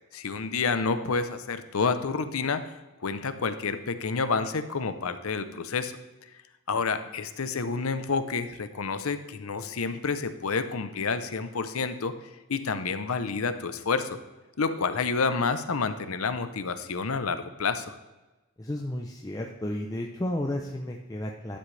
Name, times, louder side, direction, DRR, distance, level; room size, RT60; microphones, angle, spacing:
voice 1, 0.1-2.7 3.0-5.9 6.7-12.1 12.5-14.2 14.6-17.9, left 4 dB, 80° left, 10 dB, 0.7 m, -29 dB
voice 2, 18.6-21.6, left 1 dB, 15° left, 1 dB, 0.5 m, -33 dB
12.0 x 7.8 x 3.3 m, 1.1 s
head